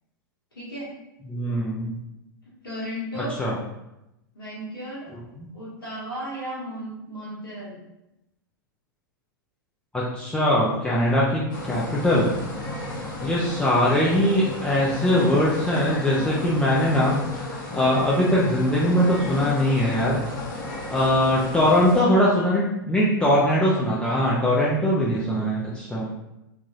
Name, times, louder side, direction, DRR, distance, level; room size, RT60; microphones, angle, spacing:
voice 1, 0.5-0.9 2.6-3.4 4.3-5.1 5.5-7.8 13.1-13.5 18.8-19.1, equal, 90° left, -8 dB, 1.2 m, -35 dB
voice 2, 1.3-2.0 3.4-3.6 5.4-5.5 9.9-12.3 13.2-20.2 20.9-26.1, left 1 dB, 10° left, -6 dB, 0.5 m, -21 dB
sound 1, 11.5-22.0, left 2 dB, 65° left, 1.1 m, -33 dB
3.3 x 2.5 x 2.4 m, 0.89 s
hypercardioid pair, 100°, 12 cm